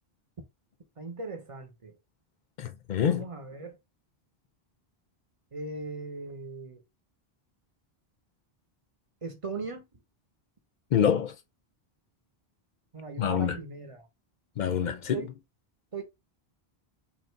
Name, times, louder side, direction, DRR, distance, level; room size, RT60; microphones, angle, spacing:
voice 1, 1.0-1.9 3.1-3.8 5.5-6.8 9.2-9.9 12.9-14.1 15.1-15.3 15.9-16.0, right 3 dB, 35° right, 0.8 m, -39 dB
voice 2, 2.6-3.2 10.9-11.4 13.2-13.6 14.6-15.2, left 8 dB, 55° left, 0.6 m, -26 dB
3.0 x 2.6 x 4.4 m
omnidirectional pair, 1.0 m